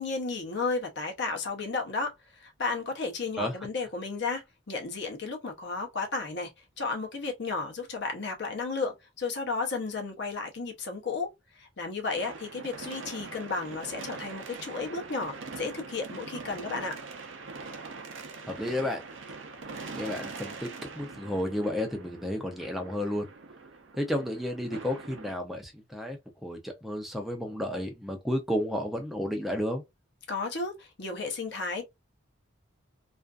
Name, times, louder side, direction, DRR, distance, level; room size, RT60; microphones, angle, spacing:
voice 1, 0.0-6.5 6.8-11.3 11.5-17.0 30.3-31.8, left 4 dB, 55° left, 0.7 m, -33 dB
sound 1, 12.2-25.3, right 4 dB, 65° right, 0.5 m, -43 dB
voice 2, 18.5-19.0 19.9-20.7 21.0-23.3 24.0-29.8, left 1 dB, ahead, 0.4 m, -32 dB
2.5 x 2.4 x 2.2 m
head